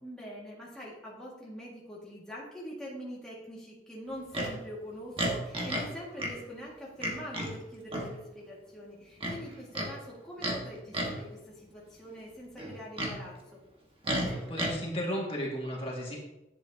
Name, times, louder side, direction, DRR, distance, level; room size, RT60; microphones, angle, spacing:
voice 1, 0.0-13.6, equal, 5° left, -6 dB, 1.9 m, -44 dB
Livestock farm animals working animals, 4.3-4.5 5.2-5.9 6.2-6.3 7.0-7.5 7.9-8.1 9.2-9.9 10.4-10.6 10.9-11.2 12.6-13.2 14.0-14.7, right 1 dB, 30° right, 1.4 m, -32 dB
voice 2, 14.5-16.2, equal, 30° left, -3 dB, 1.9 m, -34 dB
11.0 x 8.2 x 2.8 m, 0.94 s
head